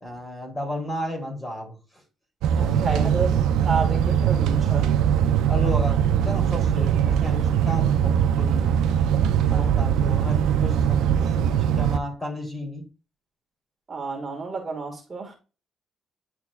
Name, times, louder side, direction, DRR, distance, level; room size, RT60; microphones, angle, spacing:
voice 1, 0.0-1.7 2.6-3.1 5.5-8.8 9.4-12.8, left 1 dB, 20° left, 3.0 m, -33 dB
sound 1, 2.4-12.0, right 9 dB, 90° right, 0.5 m, -21 dB
voice 2, 2.5-3.4 3.6-4.9 9.5-9.7 13.9-15.3, right 4 dB, 35° right, 1.6 m, -30 dB
9.7 x 4.5 x 2.3 m
cardioid pair, 90°, 0 cm